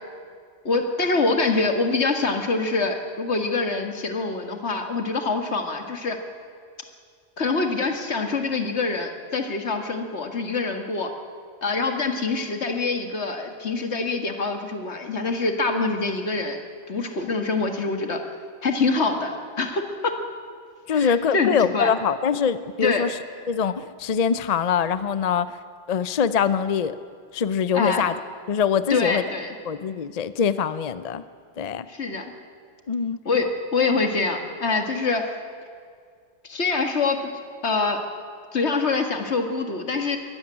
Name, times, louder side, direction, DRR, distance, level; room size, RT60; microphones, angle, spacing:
voice 1, 0.7-6.2 7.4-11.1 11.6-16.6 16.9-18.2 18.6-20.2 20.9-21.9 22.8-23.0 27.7-28.1 28.9-29.6 31.9-32.3 33.3-35.3 36.4-37.3 37.6-38.0 38.5-40.2, left 3 dB, 80° left, 5 dB, 2.1 m, -25 dB
voice 2, 20.9-23.2 23.5-25.6 25.9-27.0 27.3-28.2 28.5-29.2 29.7-31.2 31.6-31.9 32.9-33.2, left 7 dB, 45° left, 14 dB, 0.6 m, -23 dB
22.5 x 14.0 x 9.8 m, 2.1 s
omnidirectional pair, 1.1 m